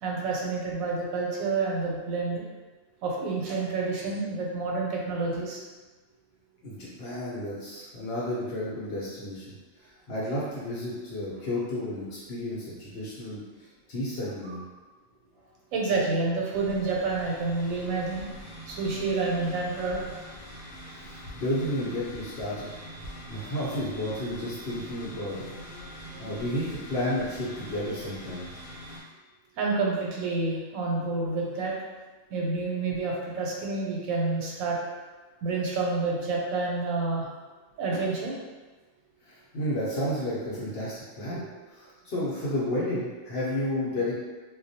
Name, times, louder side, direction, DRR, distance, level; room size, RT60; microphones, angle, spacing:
voice 1, 0.0-2.4 3.0-5.6 14.4-14.6 15.7-18.3 18.7-20.0 29.6-31.7 32.3-34.8 35.4-37.3 37.8-38.4, right 3 dB, 85° right, -2 dB, 1.0 m, -28 dB
voice 2, 6.6-9.5 9.8-13.4 13.9-14.6 21.0-22.7 23.3-25.5 26.2-28.4 39.3-41.4 41.7-44.2, left 1 dB, 55° left, -7 dB, 0.8 m, -32 dB
sound 1, 16.5-29.0, equal, 85° left, 1.0 m, -44 dB
2.3 x 2.1 x 2.6 m, 1.3 s
omnidirectional pair, 1.4 m